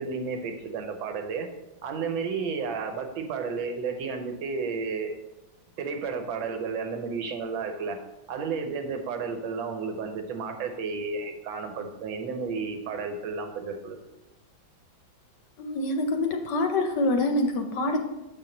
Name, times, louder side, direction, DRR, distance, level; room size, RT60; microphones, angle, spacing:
voice 1, 0.0-1.5 1.8-5.2 5.8-8.0 8.3-14.0, right 5 dB, 80° right, 5 dB, 1.5 m, -32 dB
voice 2, 15.6-18.0, left 2 dB, 70° left, 5 dB, 1.1 m, -26 dB
7.7 x 4.4 x 3.9 m, 0.97 s
omnidirectional pair, 2.2 m